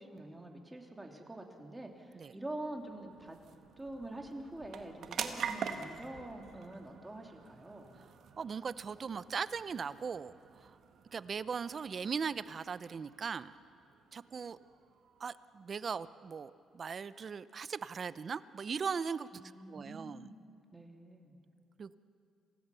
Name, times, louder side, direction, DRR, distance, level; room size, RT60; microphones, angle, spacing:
voice 1, 0.0-3.4 3.8-8.0 19.3-20.4 20.7-21.3, right 1 dB, 15° right, 2 dB, 2.8 m, -46 dB
sound 1, 1.7-16.6, right 7 dB, 65° right, 1.5 m, -47 dB
voice 2, 8.4-10.8 11.1-13.5 14.1-14.6 15.2-19.4 19.7-20.3 21.8-22.0, right 6 dB, 45° right, 15 dB, 0.7 m, -39 dB
27.5 x 17.0 x 7.0 m, 2.6 s
cardioid pair, 90°, 0 cm